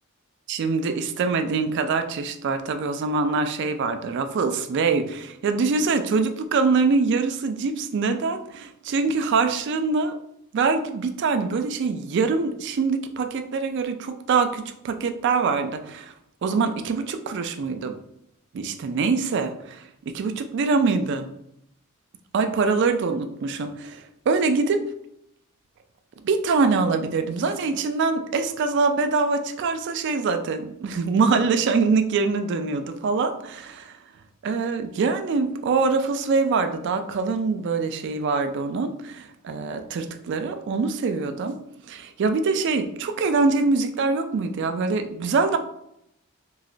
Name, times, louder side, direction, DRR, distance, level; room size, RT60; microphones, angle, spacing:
voice 1, 0.5-10.1 10.5-16.1 16.4-18.0 18.5-21.3 22.3-24.8 26.2-33.9 34.4-41.6 41.9-45.6, right 4 dB, 55° right, 8 dB, 0.3 m, -24 dB
3.1 x 2.8 x 2.6 m, 0.77 s
head